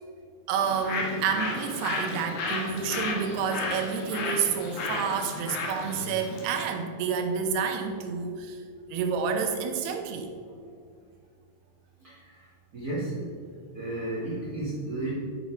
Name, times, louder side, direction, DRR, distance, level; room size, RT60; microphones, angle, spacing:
voice 1, 0.5-8.6 8.9-10.3, right 6 dB, 85° right, 5 dB, 2.8 m, -29 dB
Bird, 0.6-6.7, left 3 dB, 85° left, 3.4 m, -33 dB
voice 2, 12.7-13.1 13.7-15.1, right 2 dB, 35° right, -8 dB, 1.4 m, -32 dB
8.9 x 5.3 x 4.9 m, 2.1 s
omnidirectional pair, 4.6 m